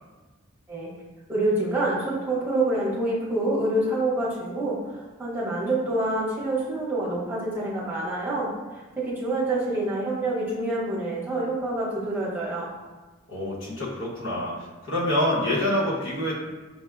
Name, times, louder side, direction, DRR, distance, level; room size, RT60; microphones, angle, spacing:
voice 1, 1.3-4.8 5.2-12.7, right 2 dB, 10° right, -7 dB, 0.8 m, -27 dB
voice 2, 13.3-14.5 14.8-16.3, left 1 dB, 75° left, -6 dB, 1.0 m, -26 dB
5.7 x 2.0 x 2.4 m, 1.2 s
head